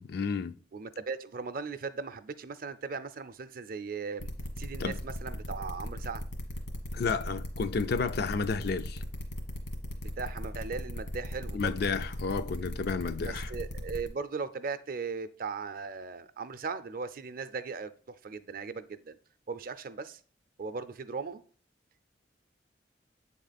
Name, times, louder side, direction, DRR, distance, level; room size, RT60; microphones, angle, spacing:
voice 1, 0.0-0.6 4.8-5.0 6.9-9.0 11.5-13.5, left 5 dB, 60° left, 0.4 m, -31 dB
voice 2, 0.7-4.3 4.6-6.2 10.0-11.7 13.3-19.2 19.5-20.2 20.6-21.4, right 4 dB, 50° right, 0.5 m, -38 dB
sound 1, 4.2-14.1, equal, 80° left, 1.5 m, -38 dB
7.9 x 3.7 x 4.0 m
head